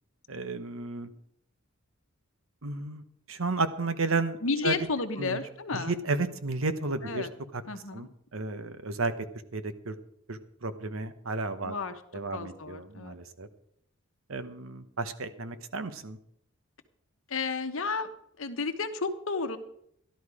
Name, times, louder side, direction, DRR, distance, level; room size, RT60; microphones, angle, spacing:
voice 1, 0.3-1.1 2.6-3.0 3.3-4.4 4.6-4.9 5.2-5.4 5.7-7.3 7.5-7.6 7.9-9.1 9.5-10.0 10.3-11.7 12.1-13.5 14.3-16.2, right 3 dB, 70° right, 10 dB, 1.0 m, -32 dB
voice 2, 4.4-5.9 7.0-7.3 7.6-8.1 11.6-12.0 12.3-13.1 17.3-19.6, left 4 dB, 65° left, 8 dB, 1.1 m, -32 dB
13.5 x 12.0 x 4.9 m, 0.72 s
head